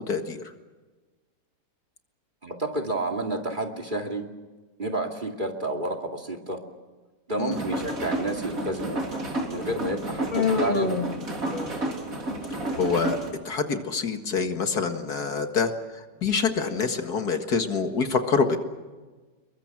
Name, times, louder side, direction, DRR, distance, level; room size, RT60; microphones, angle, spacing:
voice 1, 0.1-0.4 7.4-7.6 12.5-13.2 13.5-15.7 16.2-18.6, left 5 dB, 65° left, 6 dB, 2.3 m, -26 dB
voice 2, 2.4-4.3 4.8-6.6 7.3-9.0 9.5-11.0, right 2 dB, 30° right, 6 dB, 2.6 m, -30 dB
sound 1, 7.5-13.3, right 2 dB, 55° right, 3.9 m, -31 dB
Human voice, 10.3-12.0, left 5 dB, 30° left, 2.0 m, -28 dB
28.0 x 23.0 x 6.1 m, 1.3 s
omnidirectional pair, 1.8 m